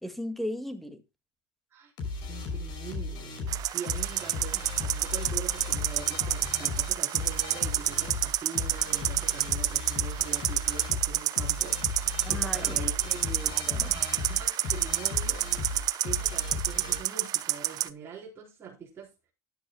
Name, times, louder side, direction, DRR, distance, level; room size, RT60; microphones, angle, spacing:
voice 1, 0.0-1.0 12.2-12.8 13.1-14.0, left 1 dB, ahead, 2.0 m, -37 dB
sound 1, 2.0-17.0, left 3 dB, 65° left, 6.1 m, -36 dB
voice 2, 2.3-13.2 13.7-15.5 16.0-19.1, right 6 dB, 30° right, 4.1 m, -43 dB
sound 2, 3.5-17.9, right 13 dB, 55° right, 0.8 m, -29 dB
14.5 x 10.5 x 2.3 m
supercardioid pair, 105°, 8 cm